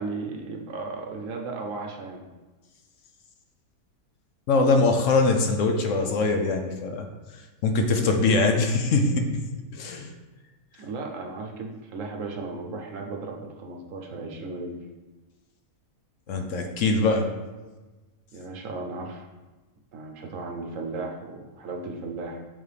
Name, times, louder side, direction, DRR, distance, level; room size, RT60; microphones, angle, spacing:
voice 1, 0.0-2.2 10.8-14.8 16.3-16.6 18.3-19.3 19.9-22.4, right 3 dB, 65° right, 2 dB, 1.1 m, -35 dB
voice 2, 4.5-7.1 7.6-9.3 9.7-10.1 16.3-17.3, left 3 dB, 65° left, 4 dB, 0.9 m, -22 dB
7.2 x 3.9 x 3.4 m, 1.2 s
omnidirectional pair, 1.6 m